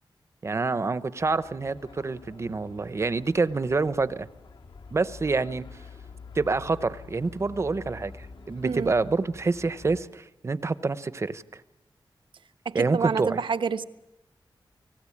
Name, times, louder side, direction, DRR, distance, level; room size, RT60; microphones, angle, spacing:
voice 1, 0.4-4.3 4.9-5.6 6.3-11.6 12.7-13.4, right 3 dB, 35° right, 15 dB, 0.8 m, -27 dB
sound 1, 1.2-10.0, left 4 dB, 80° left, 3.3 m, -47 dB
voice 2, 12.6-13.9, right 5 dB, 75° right, 11 dB, 1.1 m, -28 dB
30.0 x 19.5 x 8.5 m, 0.93 s
wide cardioid pair, 170°, 8 cm